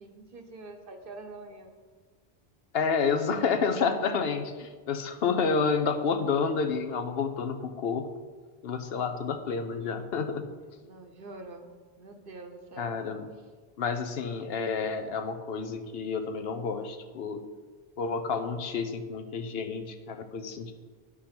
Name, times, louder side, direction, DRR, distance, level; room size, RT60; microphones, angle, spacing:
voice 1, 0.0-1.7 10.8-11.7 12.0-13.0, right 2 dB, 60° right, 6 dB, 1.0 m, -45 dB
voice 2, 2.7-8.1 8.6-10.5 12.8-13.3 13.8-17.4 18.0-20.7, left 5 dB, 70° left, 7 dB, 0.9 m, -29 dB
10.0 x 5.0 x 6.0 m, 1.5 s
omnidirectional pair, 1.0 m